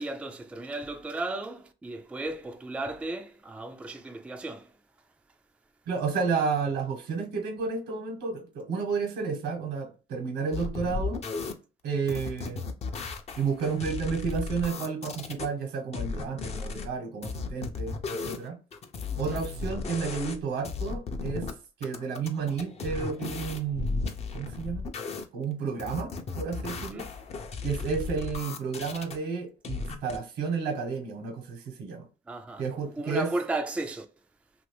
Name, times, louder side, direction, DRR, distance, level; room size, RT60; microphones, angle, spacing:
voice 1, 0.0-4.7 19.1-19.4 26.9-27.1 32.3-32.6 33.0-34.1, right 2 dB, 5° right, 0.3 m, -35 dB
voice 2, 5.9-11.2 11.8-12.6 13.4-18.0 18.2-18.6 19.2-21.5 21.8-24.0 24.3-24.9 25.3-27.1 27.6-32.1 32.6-33.3, right 5 dB, 85° right, 1.1 m, -31 dB
sound 1, 10.5-11.5 12.1-15.5 15.9-16.9 17.2-20.4 20.6-21.5 21.8-25.2 25.8-29.2 29.6-30.2, left 4 dB, 40° left, 0.6 m, -35 dB
2.8 x 2.6 x 3.2 m
cardioid pair, 110°, 17 cm